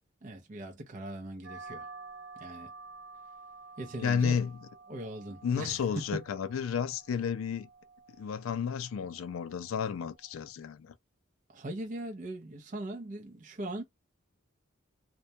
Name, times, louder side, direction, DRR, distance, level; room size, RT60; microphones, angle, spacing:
voice 1, 0.2-1.9 2.4-2.7 3.8-4.4 4.9-6.2 11.5-13.8, right 1 dB, 40° right, 0.5 m, -40 dB
sound 1, 1.4-10.5, right 4 dB, 65° right, 1.0 m, -51 dB
voice 2, 4.0-4.6 5.4-7.7 8.2-10.9, left 7 dB, 75° left, 0.3 m, -32 dB
2.1 x 2.1 x 2.6 m
head